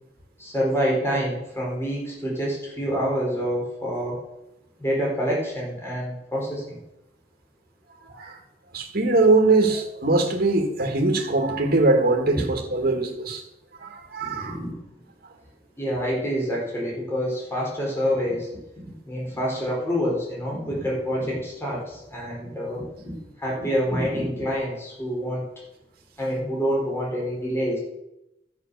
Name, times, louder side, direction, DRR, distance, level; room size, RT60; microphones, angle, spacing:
voice 1, 0.4-4.2 4.8-6.8 12.3-12.4 14.2-14.7 15.8-18.5 18.8-23.1 23.4-25.4 26.2-27.8, equal, 15° left, -4 dB, 3.8 m, -27 dB
voice 2, 8.7-13.4 13.8-14.6, right 2 dB, 55° right, 3 dB, 1.8 m, -21 dB
13.0 x 6.0 x 6.8 m, 0.88 s
head